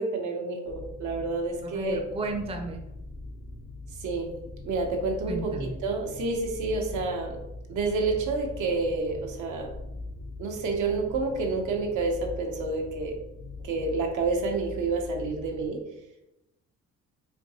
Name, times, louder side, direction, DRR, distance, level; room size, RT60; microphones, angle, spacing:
voice 1, 0.0-2.0 4.0-4.3 4.6-7.4 7.7-9.7 10.4-13.1 13.6-15.8, right 3 dB, 80° right, 2 dB, 0.8 m, -29 dB
sound 1, 0.7-15.7, left 2 dB, 65° left, 0.7 m, -41 dB
voice 2, 1.6-2.8 5.3-5.8, right 1 dB, 20° right, 3 dB, 0.5 m, -33 dB
4.3 x 2.6 x 2.8 m, 0.87 s
cardioid pair, 90°, 30 cm